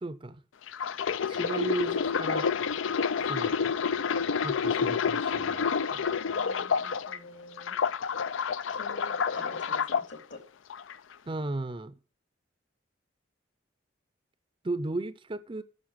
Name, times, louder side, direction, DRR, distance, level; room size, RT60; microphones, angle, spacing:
voice 1, 0.0-0.4 1.3-2.5 3.3-3.8 4.4-6.0 11.3-12.0 14.6-15.6, right 2 dB, 25° right, 0.5 m, -35 dB
sound 1, 0.7-7.2 7.6-10.0 10.7-10.9, left 6 dB, 80° left, 0.5 m, -29 dB
voice 2, 6.1-7.8 8.8-10.4, left 2 dB, 65° left, 2.9 m, -46 dB
9.4 x 6.6 x 8.8 m
head